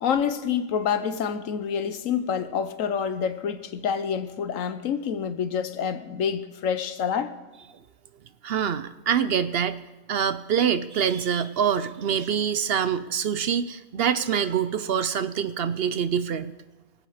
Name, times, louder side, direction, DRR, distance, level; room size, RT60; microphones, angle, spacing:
voice 1, 0.0-7.3, left 7 dB, 75° left, 1.2 m, -27 dB
voice 2, 8.4-9.8 10.1-16.5, right 8 dB, 60° right, 0.7 m, -25 dB
23.5 x 7.9 x 4.9 m
omnidirectional pair, 1.4 m